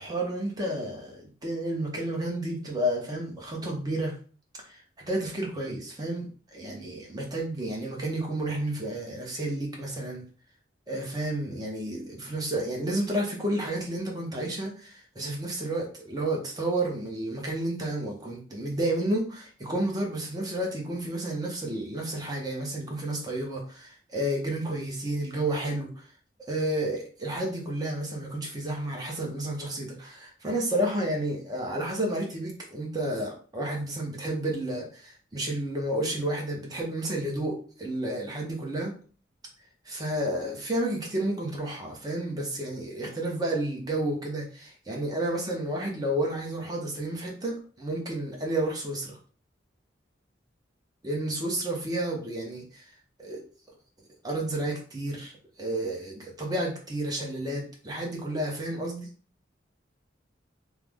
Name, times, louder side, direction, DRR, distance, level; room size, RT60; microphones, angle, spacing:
voice 1, 0.0-4.1 4.6-10.3 10.9-26.1 26.5-39.0 39.8-49.2 51.0-52.9 53.2-53.4 54.2-55.3 55.6-59.1, right 1 dB, 20° right, -1 dB, 0.8 m, -31 dB
3.2 x 2.0 x 3.5 m, 0.39 s
head